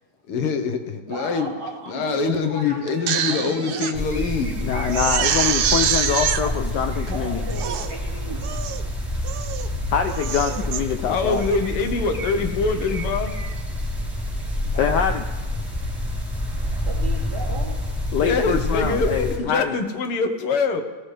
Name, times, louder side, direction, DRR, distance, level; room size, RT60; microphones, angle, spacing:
voice 1, 0.3-1.5 1.9-4.7 11.1-13.4 18.2-20.8, left 4 dB, 90° left, 6 dB, 2.1 m, -24 dB
voice 2, 1.1-4.0 6.4-6.5 6.9-8.6 11.2-11.3 14.7-15.0 16.8-17.8, right 2 dB, 45° right, -3 dB, 3.1 m, -35 dB
Crying sobbing, 2.9-3.9 4.4-4.5 4.9-6.4 7.1-7.2 7.5-7.9 8.4-8.8 9.2-9.7 10.1-10.8 11.3-11.6, right 8 dB, 65° right, 1.0 m, -25 dB
sound 1, 3.9-19.4, left 1 dB, ahead, 3.9 m, -28 dB
voice 3, 4.6-7.4 9.9-11.4 14.8-15.2 18.1-19.7, left 7 dB, 70° left, 6 dB, 1.1 m, -24 dB
19.0 x 15.5 x 3.4 m, 1.2 s
omnidirectional pair, 2.4 m